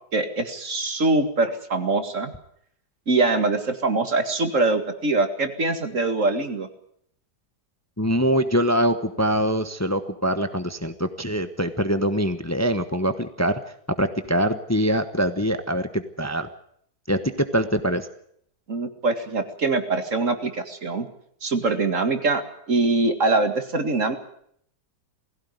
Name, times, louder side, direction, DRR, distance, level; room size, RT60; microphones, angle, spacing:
voice 1, 0.1-2.3 3.1-6.7 18.7-21.1 21.4-22.4 22.7-24.2, right 3 dB, 50° right, 7 dB, 2.4 m, -23 dB
voice 2, 8.0-13.6 14.0-16.5 17.1-18.1, equal, 10° left, 9 dB, 0.9 m, -23 dB
20.5 x 16.0 x 9.4 m, 0.68 s
omnidirectional pair, 1.8 m